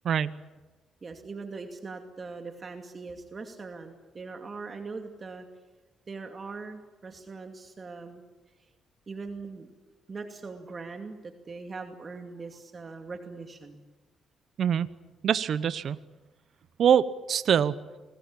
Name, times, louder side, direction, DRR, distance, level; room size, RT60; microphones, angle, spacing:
voice 1, 0.0-0.4 14.6-14.9 15.2-16.0 16.8-17.8, right 8 dB, 60° right, 15 dB, 0.9 m, -24 dB
voice 2, 1.0-5.5 6.1-8.2 9.1-9.8 10.1-13.8, right 4 dB, 35° right, 4 dB, 2.5 m, -41 dB
28.0 x 20.0 x 8.8 m, 1.2 s
cardioid pair, 90°, 0 cm